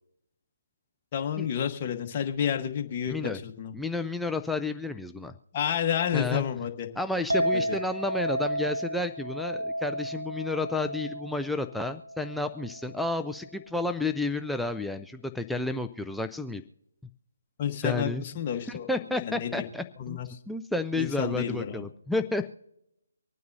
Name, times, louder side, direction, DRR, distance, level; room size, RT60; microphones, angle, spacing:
voice 1, 1.1-3.7 5.5-6.9 7.5-7.6 17.6-18.9 19.2-19.6 20.0-20.3 21.0-21.9, left 9 dB, 30° left, 3 dB, 1.3 m, -30 dB
voice 2, 3.1-3.4 3.7-5.3 6.1-6.4 7.0-16.6 17.8-18.2 18.7-20.2 20.5-22.5, left 2 dB, ahead, 5 dB, 0.4 m, -31 dB
Chink clink, 7.3-13.6, equal, 90° right, 1.2 m, -33 dB
25.0 x 9.3 x 2.7 m, 0.85 s
figure-of-eight pair, 150°, 0 cm